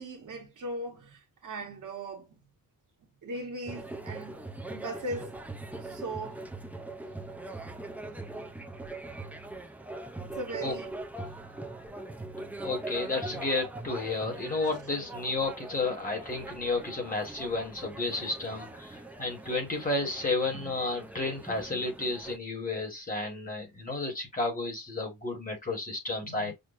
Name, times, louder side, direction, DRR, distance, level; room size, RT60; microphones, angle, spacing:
voice 1, 0.0-2.3 3.2-4.4 4.7-5.4 5.8-6.4 10.2-10.9 26.2-26.5, right 1 dB, 55° right, 1.0 m, -38 dB
sound 1, 3.7-22.4, right 2 dB, 5° right, 0.4 m, -42 dB
voice 2, 12.6-26.5, left 3 dB, 25° left, 1.3 m, -32 dB
6.2 x 2.2 x 2.4 m
wide cardioid pair, 165°, 36 cm